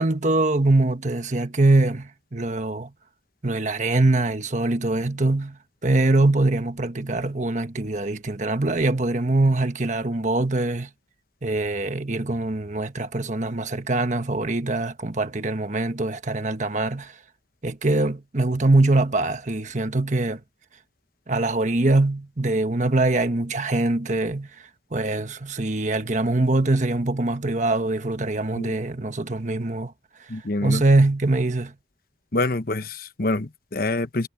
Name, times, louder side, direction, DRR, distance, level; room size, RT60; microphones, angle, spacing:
voice 1, 0.0-2.9 3.4-10.9 11.4-17.1 17.6-20.4 21.3-24.5 24.9-29.9 30.6-31.7, right 2 dB, 40° right, 1.3 m, -23 dB
voice 2, 30.3-30.8 32.3-34.3, left 2 dB, 55° left, 1.1 m, -26 dB
head